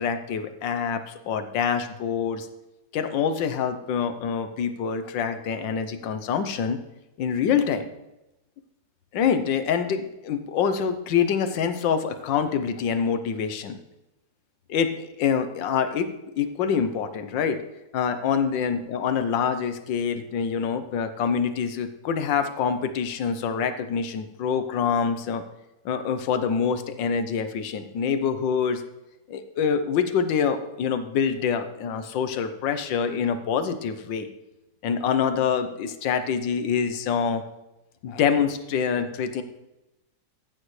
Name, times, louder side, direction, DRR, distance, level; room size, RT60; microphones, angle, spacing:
voice 1, 0.0-2.5 2.9-6.8 7.2-7.9 9.1-13.8 14.7-16.1 16.4-17.6 17.9-25.4 25.8-28.8 29.3-34.3 34.8-37.4 38.0-39.4, left 7 dB, 90° left, 9 dB, 1.6 m, -25 dB
14.0 x 8.8 x 3.2 m, 0.94 s
omnidirectional pair, 1.9 m